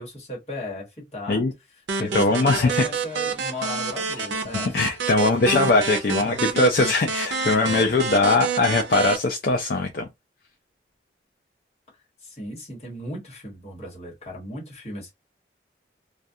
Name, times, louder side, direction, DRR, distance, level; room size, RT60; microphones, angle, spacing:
voice 1, 0.0-1.4 2.0-4.8 6.2-6.4 7.6-8.0 12.2-15.1, left 1 dB, 35° left, 1.1 m, -36 dB
sound 1, 1.9-9.2, right 5 dB, 90° right, 0.5 m, -28 dB
voice 2, 2.1-2.8 4.7-10.1, left 3 dB, 55° left, 0.4 m, -21 dB
2.3 x 2.2 x 2.6 m
head